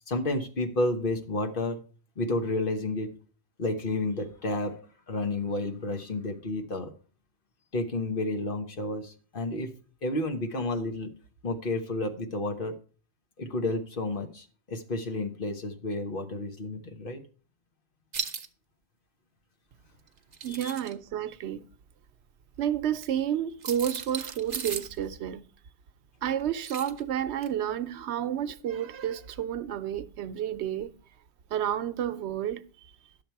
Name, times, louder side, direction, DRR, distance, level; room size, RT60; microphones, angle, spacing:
voice 1, 0.1-1.8 2.2-3.1 3.6-4.7 5.1-6.9 7.7-9.7 10.0-11.1 11.4-12.8 13.4-17.2 20.5-20.7, left 2 dB, 55° left, 1.4 m, -31 dB
sound 1, 18.1-18.5 20.2-20.9 23.0-23.1 23.6-25.0 26.6-27.0 27.4-27.5, right 6 dB, 45° right, 0.8 m, -36 dB
voice 2, 20.4-21.7 22.6-25.4 26.2-30.9 31.5-32.6, right 10 dB, 85° right, 0.9 m, -30 dB
11.0 x 7.1 x 4.5 m
omnidirectional pair, 1.1 m